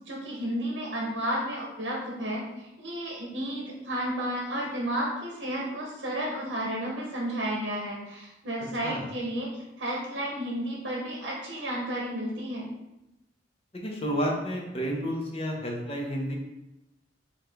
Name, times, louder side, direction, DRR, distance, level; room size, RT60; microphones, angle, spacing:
voice 1, 0.1-12.7, right 1 dB, 65° right, -2 dB, 0.8 m, -32 dB
voice 2, 13.7-16.3, equal, 35° left, 0 dB, 0.7 m, -31 dB
4.7 x 2.4 x 3.4 m, 0.93 s
head